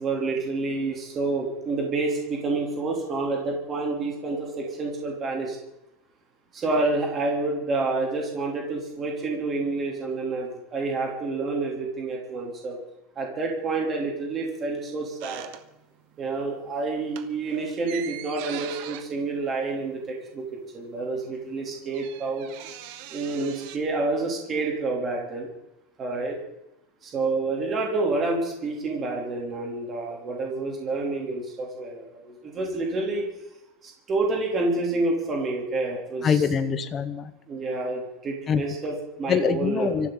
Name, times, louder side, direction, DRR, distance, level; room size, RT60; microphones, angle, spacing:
voice 1, 0.0-5.6 6.5-12.8 13.1-15.4 16.2-20.4 20.7-22.5 23.1-25.5 26.0-26.4 27.0-33.3 33.8-36.4 37.5-39.9, right 3 dB, 20° right, -1 dB, 3.1 m, -28 dB
sound 1, 15.2-16.1 16.4-16.7 17.0-20.5 20.8-20.9 21.1-23.8, right 11 dB, 55° right, 1.3 m, -41 dB
voice 2, 36.2-37.3 38.5-38.6 39.3-40.1, left 7 dB, 20° left, 9 dB, 1.0 m, -24 dB
25.5 x 14.5 x 3.9 m, 0.89 s
supercardioid pair, 175°, 0 cm